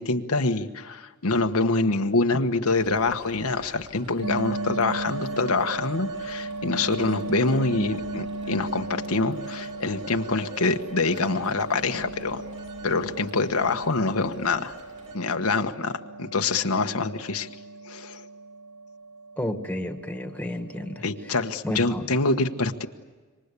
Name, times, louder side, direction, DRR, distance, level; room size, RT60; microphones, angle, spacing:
voice 1, 0.0-12.4 12.8-14.7 15.1-15.9 16.2-17.5 17.9-18.2 21.0-22.9, left 3 dB, 80° left, 6 dB, 1.4 m, -25 dB
Telephone, 2.7-15.2, right 3 dB, 35° right, 5.1 m, -47 dB
sound 1, 4.2-21.5, right 2 dB, 70° right, 1.1 m, -37 dB
voice 2, 19.4-21.0 21.6-22.1, left 1 dB, 5° left, 6 dB, 1.9 m, -31 dB
27.0 x 24.5 x 8.4 m, 1.4 s
head